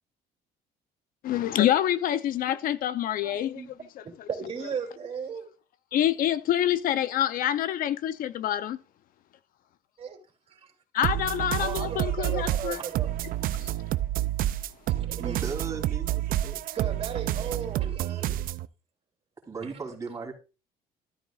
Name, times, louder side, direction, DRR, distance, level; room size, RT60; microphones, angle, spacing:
voice 1, 1.2-3.6 4.0-4.3 5.9-8.8 10.9-12.8 13.6-13.7, left 11 dB, 65° left, 0.7 m, -26 dB
voice 2, 3.2-3.8 4.3-5.5 10.0-10.2 10.5-10.7 11.6-13.1 15.0-15.5 16.7-18.3 19.6-19.7, right 6 dB, 40° right, 3.0 m, -36 dB
sound 1, 11.0-18.7, right 13 dB, 60° right, 0.5 m, -29 dB
voice 3, 15.2-16.6 19.5-20.3, right 4 dB, 20° right, 3.4 m, -37 dB
13.0 x 9.0 x 2.5 m
cardioid pair, 110°, 16 cm